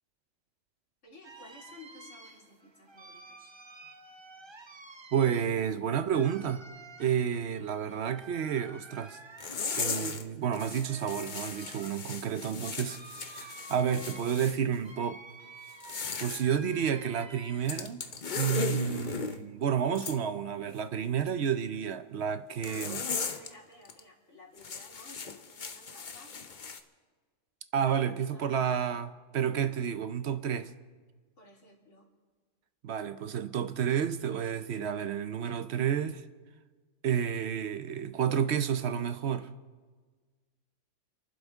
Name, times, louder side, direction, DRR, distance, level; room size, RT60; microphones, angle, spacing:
voice 1, 1.0-3.5 22.6-26.4 27.8-29.0 31.4-32.1, left 2 dB, 75° left, 3.3 m, -55 dB
sound 1, 1.2-17.9 18.2-19.4, right 3 dB, 25° right, 0.7 m, -51 dB
voice 2, 5.1-6.6 7.0-9.2 9.7-15.2 16.2-18.0 18.3-23.0 27.7-30.7 32.8-36.2 37.0-39.5, right 8 dB, 65° right, 0.9 m, -30 dB
sound 2, 9.4-10.2 10.5-14.6 15.7-16.4 17.7-19.4 20.0-20.2 22.6-23.5 23.8-24.0 24.6-26.8, left 5 dB, 45° left, 0.9 m, -37 dB
29.5 x 11.5 x 3.6 m
omnidirectional pair, 1.2 m